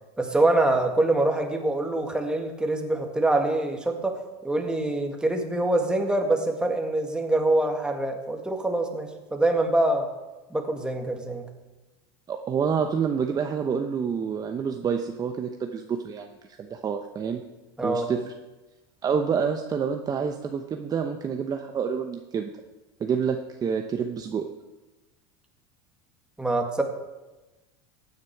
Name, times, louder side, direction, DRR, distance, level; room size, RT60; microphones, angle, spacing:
voice 1, 0.2-10.1 10.5-11.5 17.8-18.1 26.4-26.8, right 2 dB, 5° right, 3 dB, 1.8 m, -25 dB
voice 2, 12.3-16.3 16.6-17.4 17.8-18.2 19.0-22.5 23.0-24.5, right 6 dB, 25° right, 5 dB, 0.9 m, -28 dB
16.0 x 9.7 x 4.7 m, 1.1 s
supercardioid pair, 115°, 14 cm